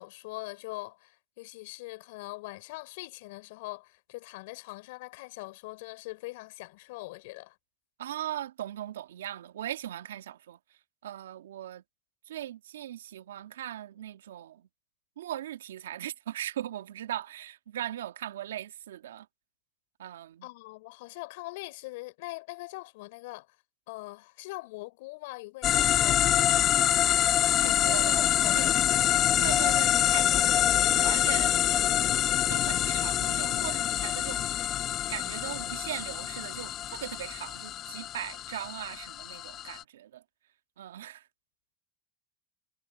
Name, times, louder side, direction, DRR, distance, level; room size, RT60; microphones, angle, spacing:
voice 1, 0.0-7.5 20.4-23.5 23.9-26.3 27.5-29.3, left 23 dB, 70° left, 4.6 m, -42 dB
voice 2, 8.0-10.6 11.0-11.8 12.3-14.7 15.2-19.3 20.0-20.5 26.8-27.1 27.6-28.7 29.4-31.6 32.5-34.8 35.1-40.2 40.8-41.3, right 12 dB, 85° right, 2.2 m, -39 dB
sound 1, 25.6-39.8, left 12 dB, 45° left, 1.4 m, -26 dB
hypercardioid pair, 85°, 0 cm